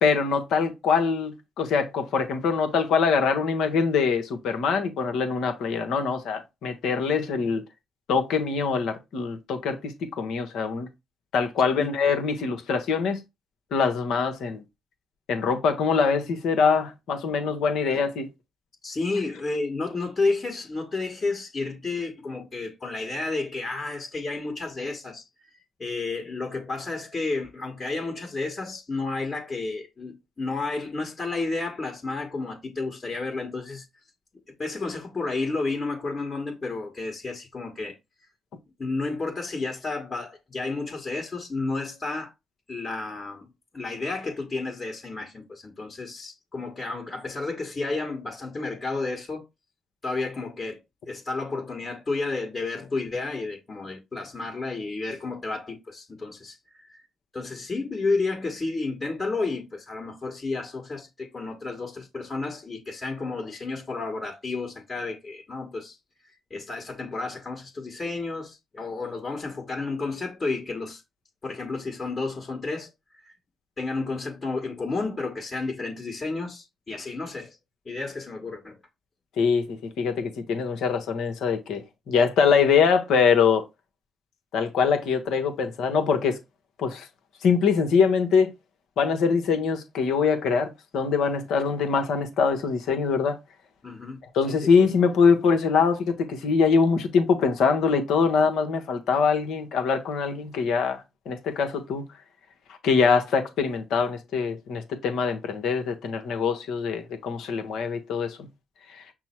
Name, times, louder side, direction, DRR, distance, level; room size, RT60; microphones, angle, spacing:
voice 1, 0.0-7.6 8.1-10.9 11.3-13.2 13.7-14.6 15.3-18.3 79.4-83.6 84.5-86.4 86.8-87.1 87.4-88.5 89.0-93.4 94.3-101.0 101.3-102.0 102.8-108.4 108.9-109.0, left 5 dB, 70° left, 0.9 m, -23 dB
voice 2, 18.8-25.3 25.8-33.8 34.6-37.9 38.8-42.3 42.7-49.4 50.0-50.8 51.1-57.0 57.3-66.0 66.5-71.0 71.4-72.9 73.2-73.3 73.8-77.6 77.8-78.8 93.8-94.2 94.5-94.6, left 3 dB, 40° left, 1.3 m, -31 dB
5.9 x 2.0 x 4.4 m
hypercardioid pair, 50°, 0 cm